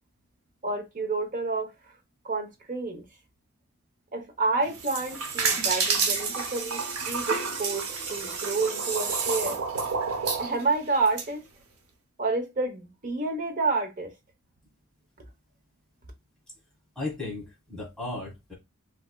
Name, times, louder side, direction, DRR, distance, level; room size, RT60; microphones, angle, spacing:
voice 1, 0.6-2.0 2.2-3.0 4.1-9.6 10.4-11.5 12.2-14.1, right 3 dB, 40° right, 0.8 m, -29 dB
sound 1, 4.6-11.3, right 5 dB, 90° right, 0.7 m, -29 dB
voice 2, 16.9-18.5, left 2 dB, 5° left, 1.2 m, -35 dB
3.3 x 2.7 x 2.2 m
head